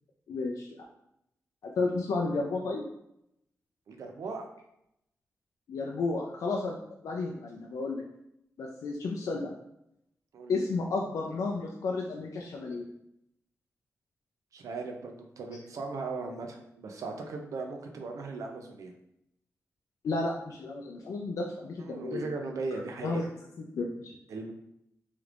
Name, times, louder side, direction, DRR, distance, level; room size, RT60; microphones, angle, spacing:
voice 1, 0.3-0.8 1.6-2.8 5.7-8.0 8.6-9.5 10.5-12.9 20.0-22.3 23.0-23.3 23.6-24.1, left 3 dB, 80° left, 0 dB, 0.4 m, -32 dB
voice 2, 3.9-4.5 10.3-10.6 14.5-18.9 21.8-23.3 24.3-24.5, right 3 dB, 85° right, 3 dB, 0.5 m, -38 dB
3.3 x 3.1 x 2.4 m, 0.78 s
wide cardioid pair, 150°, 5 cm